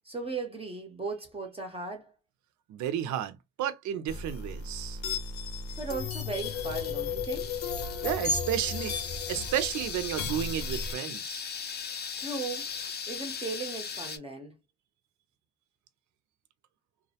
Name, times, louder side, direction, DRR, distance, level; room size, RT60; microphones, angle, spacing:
voice 1, 0.0-2.1 5.8-7.6 12.2-12.7 13.1-14.5, right 3 dB, 20° right, 0.6 m, -37 dB
voice 2, 2.7-5.0 8.0-9.0 9.3-11.5, right 11 dB, 70° right, 0.5 m, -32 dB
sound 1, 4.1-10.9, left 4 dB, 65° left, 0.8 m, -34 dB
sound 2, 6.3-14.2, left 6 dB, 35° left, 0.5 m, -39 dB
2.2 x 2.1 x 2.7 m
cardioid pair, 90°, 30 cm